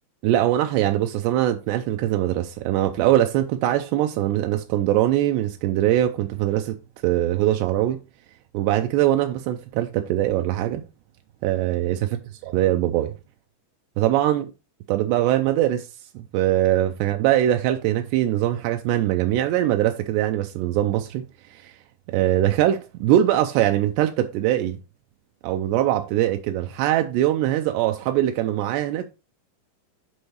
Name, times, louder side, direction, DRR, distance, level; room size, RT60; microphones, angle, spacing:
voice 1, 0.2-6.8 7.0-8.0 8.5-10.8 11.4-12.2 12.4-13.1 14.0-14.5 14.9-15.9 16.2-21.2 21.5-21.7 22.1-24.8 25.4-29.1, right 13 dB, 85° right, 2.5 m, -22 dB
10.5 x 4.7 x 3.3 m
omnidirectional pair, 5.4 m